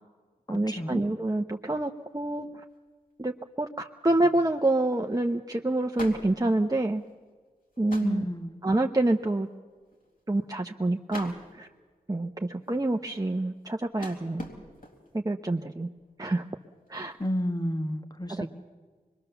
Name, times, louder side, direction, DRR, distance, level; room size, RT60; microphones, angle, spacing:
voice 1, 0.5-2.5 3.2-3.3 3.6-7.0 7.8-8.2 8.6-9.5 10.3-11.7 12.1-14.5 15.1-15.9 16.2-16.4 16.9-17.1 18.3-18.5, right 2 dB, 25° right, 3 dB, 0.9 m, -27 dB
sound 1, 1.5-1.6 1.8-2.3 2.7-2.8 4.2-4.5 4.9-5.0 5.2-5.5 5.8-7.2 7.7-8.4 8.8-9.1 9.4-9.5 9.7-10.5 11.1-11.8 12.4-15.2 15.8-16.1 16.4-17.4, left 1 dB, 65° left, 3.8 m, -45 dB
voice 2, 8.0-8.6 17.2-18.5, equal, 25° left, 8 dB, 1.5 m, -31 dB
24.5 x 21.5 x 7.0 m, 1.5 s
wide cardioid pair, 40°, 16 cm